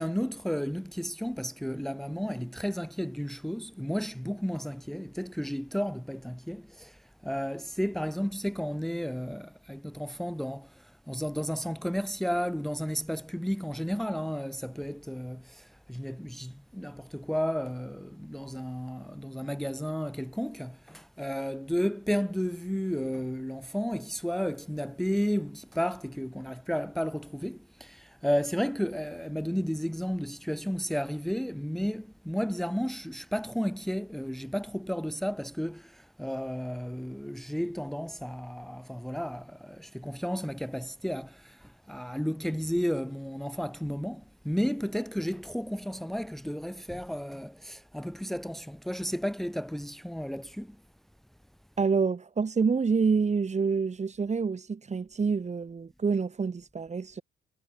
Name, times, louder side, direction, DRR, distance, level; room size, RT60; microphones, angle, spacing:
voice 1, 0.0-50.8, equal, ahead, 2.0 m, -33 dB
voice 2, 51.8-57.2, right 5 dB, 35° right, 5.6 m, -27 dB
cardioid pair, 90°, 20 cm